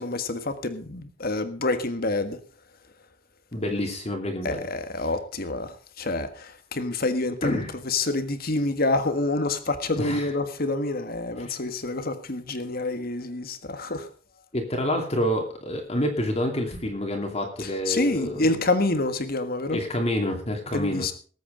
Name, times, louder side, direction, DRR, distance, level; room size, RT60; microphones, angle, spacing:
voice 1, 0.0-2.4 4.4-14.1 17.6-19.8 20.7-21.1, left 2 dB, 50° left, 9 dB, 1.6 m, -27 dB
voice 2, 3.5-4.6 7.4-7.7 10.0-10.3 11.4-11.5 14.5-18.5 19.7-21.1, left 1 dB, 30° left, 2 dB, 2.6 m, -28 dB
19.5 x 8.5 x 5.1 m, 0.41 s
head